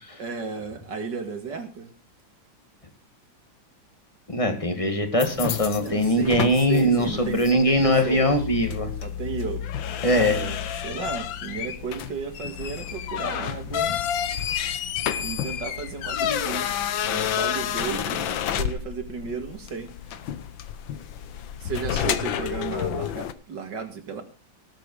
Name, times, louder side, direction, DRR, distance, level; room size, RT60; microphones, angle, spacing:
voice 1, 0.2-1.9 5.8-8.4 9.0-9.6 10.1-13.9 15.2-16.7 17.0-19.9 21.6-24.2, right 5 dB, 65° right, 6 dB, 2.7 m, -34 dB
voice 2, 4.3-8.9 10.0-10.4, equal, 15° left, 6 dB, 2.4 m, -21 dB
sound 1, 5.2-23.3, left 9 dB, 80° left, 1.7 m, -30 dB
18.5 x 8.5 x 4.9 m, 0.35 s
omnidirectional pair, 2.1 m